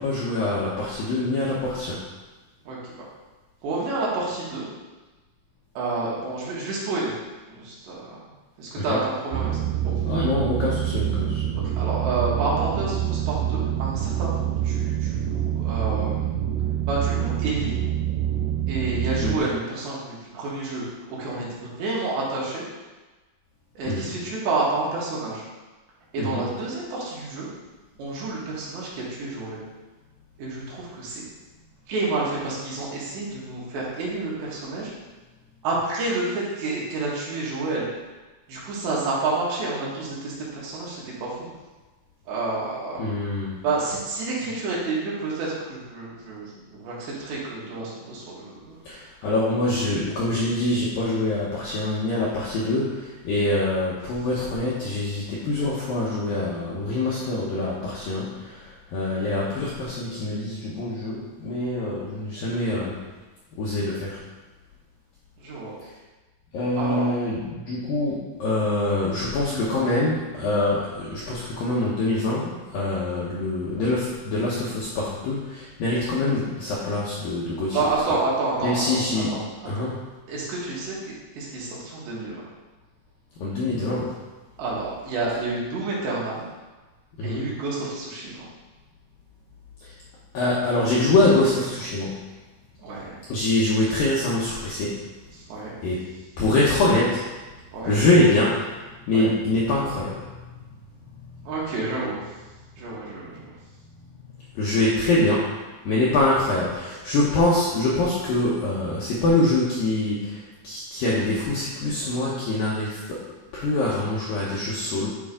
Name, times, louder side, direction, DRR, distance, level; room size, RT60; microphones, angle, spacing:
voice 1, 0.0-2.0 8.8-9.0 10.0-11.5 19.2-19.4 23.8-24.1 26.2-26.4 43.0-43.6 48.9-63.0 63.6-64.2 66.5-77.8 78.6-79.3 79.7-80.0 83.4-84.2 87.2-87.5 90.3-92.3 93.3-95.0 95.8-96.0 96.4-97.3 97.8-98.7 99.1-100.5 104.5-105.5 105.9-113.2 113.5-115.1, left 2 dB, 75° left, -6 dB, 2.1 m, -24 dB
voice 2, 3.6-4.7 5.8-7.1 7.5-8.2 8.6-9.9 11.8-16.3 16.9-17.8 18.7-22.7 23.8-25.4 26.1-27.5 28.0-29.6 30.4-31.2 31.9-34.9 35.6-37.9 38.5-41.4 42.3-43.0 43.6-48.8 49.6-50.0 65.4-65.7 66.8-67.1 69.5-69.9 77.7-79.9 80.3-82.4 84.6-86.4 87.2-88.5 92.8-93.2 95.3-95.8 97.7-98.0 99.1-99.3 101.5-102.2 102.8-103.5, right 3 dB, 65° right, -6 dB, 3.7 m, -29 dB
sound 1, 9.3-19.4, right 11 dB, 85° right, 2.8 m, -26 dB
11.5 x 5.3 x 3.8 m, 1.2 s
omnidirectional pair, 5.7 m